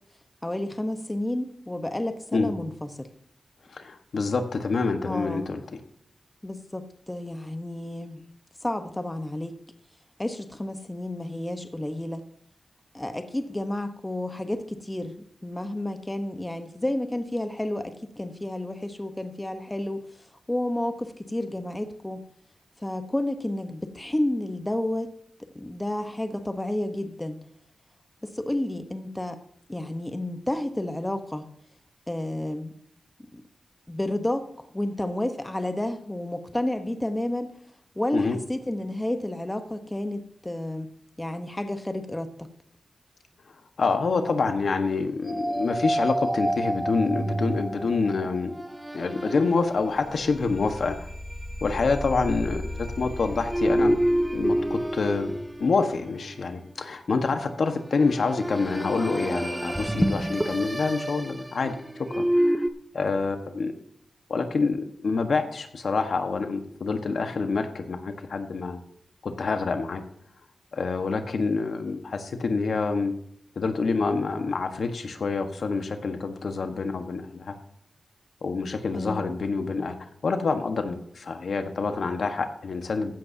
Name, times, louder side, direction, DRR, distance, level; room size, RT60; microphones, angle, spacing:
voice 1, 0.4-3.1 5.1-5.5 6.4-8.2 8.6-9.6 10.2-12.2 12.9-15.1 15.4-20.0 20.5-22.2 22.8-25.1 25.5-27.4 28.2-29.4 29.7-31.4 32.1-32.7 33.3-33.4 33.9-34.5 34.7-37.5 38.0-42.5 78.9-79.4, left 1 dB, 15° left, 7 dB, 1.0 m, -31 dB
voice 2, 3.7-5.6 38.1-38.4 43.8-48.6 48.9-51.1 51.6-54.0 54.3-55.3 55.6-61.8 62.1-62.6 62.9-63.7 64.3-68.8 69.2-70.0 70.7-73.1 73.5-77.5 78.4-80.0 80.2-83.1, left 4 dB, 70° left, 6 dB, 1.4 m, -27 dB
sound 1, 45.3-56.4 57.9-62.7, right 1 dB, 10° right, 0.7 m, -29 dB
15.0 x 11.0 x 2.8 m, 0.69 s
wide cardioid pair, 80°, 0 cm